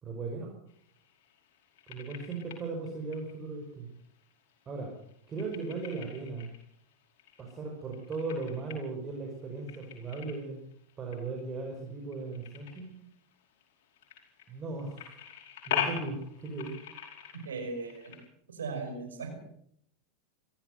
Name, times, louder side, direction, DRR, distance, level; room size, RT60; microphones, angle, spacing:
voice 1, 0.0-0.5 1.9-3.9 4.7-5.0 5.3-6.5 7.4-10.6 11.0-13.0 14.5-15.3 15.7-16.8, right 3 dB, 30° right, 2 dB, 5.4 m, -37 dB
sound 1, 0.7-18.3, left 8 dB, 65° left, 5.1 m, -43 dB
voice 2, 17.3-18.1 18.5-19.4, right 4 dB, 85° right, 5 dB, 5.5 m, -37 dB
23.0 x 14.5 x 7.8 m, 0.68 s
hypercardioid pair, 95°, 0 cm